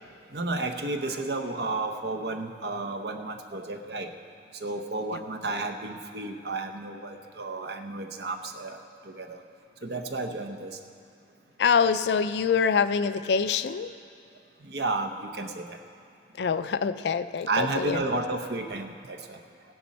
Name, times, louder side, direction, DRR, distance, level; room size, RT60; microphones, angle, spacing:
voice 1, 0.3-4.1 4.5-9.4 9.8-10.8 14.6-15.8 16.4-16.7 17.5-19.4, right 2 dB, 60° right, 5 dB, 0.8 m, -32 dB
voice 2, 11.6-13.9 16.4-18.0, left 6 dB, 70° left, 12 dB, 0.4 m, -25 dB
16.5 x 10.5 x 4.2 m, 2.3 s
head